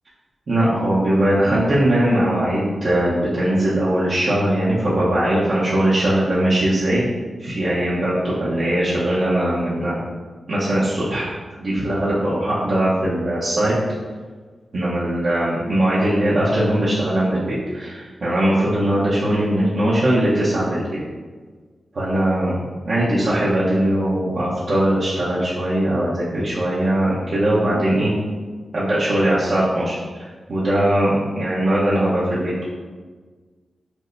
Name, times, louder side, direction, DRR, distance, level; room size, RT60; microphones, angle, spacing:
voice 1, 0.5-7.0 7.4-10.0 10.5-11.3 11.6-13.7 14.7-21.0 21.9-28.1 28.7-32.6, right 1 dB, 65° right, -10 dB, 0.9 m, -20 dB
6.1 x 2.2 x 2.6 m, 1.4 s
cardioid pair, 65°, 0 cm